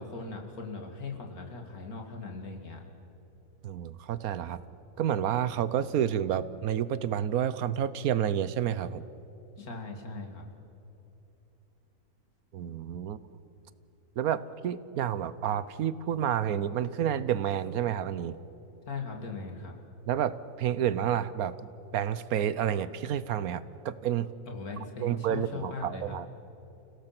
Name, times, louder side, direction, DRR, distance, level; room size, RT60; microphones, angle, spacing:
voice 1, 0.0-2.8 9.6-10.4 18.9-19.7 24.5-26.2, left 3 dB, 80° left, 2 dB, 2.8 m, -39 dB
voice 2, 3.6-4.6 5.0-9.0 12.5-13.2 14.2-18.4 20.1-21.6 21.9-24.3 25.0-26.3, right 9 dB, 75° right, 16 dB, 1.2 m, -29 dB
29.0 x 17.0 x 6.0 m, 3.0 s
omnidirectional pair, 1.5 m